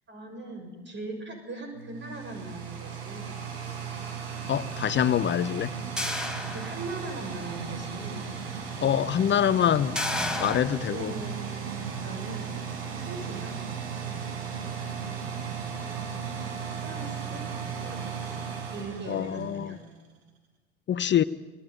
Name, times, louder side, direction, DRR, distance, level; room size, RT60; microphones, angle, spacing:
voice 1, 0.1-3.3 5.3-6.0 6.5-8.6 10.9-12.5 13.1-13.6 16.8-17.5 17.8-18.4 18.7-19.8, right 3 dB, 35° right, 5 dB, 6.6 m, -40 dB
sound 1, 1.7-19.9, right 6 dB, 75° right, 4.9 m, -36 dB
voice 2, 4.5-5.7 8.8-10.0 10.4-11.1 19.1-19.8 20.9-21.2, left 10 dB, 35° left, 15 dB, 0.9 m, -25 dB
sound 2, 6.0-7.2 7.7-7.8 9.9-10.6, left 1 dB, ahead, 4.5 m, -31 dB
26.5 x 20.5 x 9.5 m, 1.3 s
hypercardioid pair, 65°, 31 cm